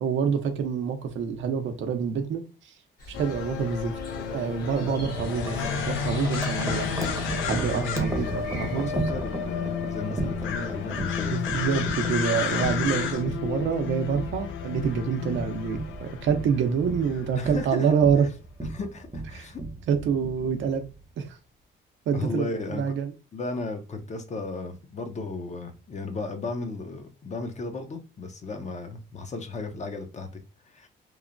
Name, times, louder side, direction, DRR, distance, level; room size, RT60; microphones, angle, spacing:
voice 1, 0.0-2.4 3.1-6.9 7.2-8.9 11.3-18.3 19.3-19.5 19.9-20.8 21.2-21.3 22.1-23.1, right 6 dB, 70° right, 0.6 m, -27 dB
sound 1, 3.0-8.9, left 1 dB, 50° left, 1.2 m, -42 dB
sound 2, 3.1-17.7, left 7 dB, 80° left, 0.5 m, -32 dB
Wind chime, 4.9-21.0, right 2 dB, 15° right, 0.7 m, -35 dB
voice 2, 7.6-11.4 17.4-17.9 18.7-19.6 22.1-22.8 23.3-30.9, left 3 dB, 35° left, 0.6 m, -35 dB
3.0 x 2.1 x 2.5 m
cardioid pair, 90°, 20 cm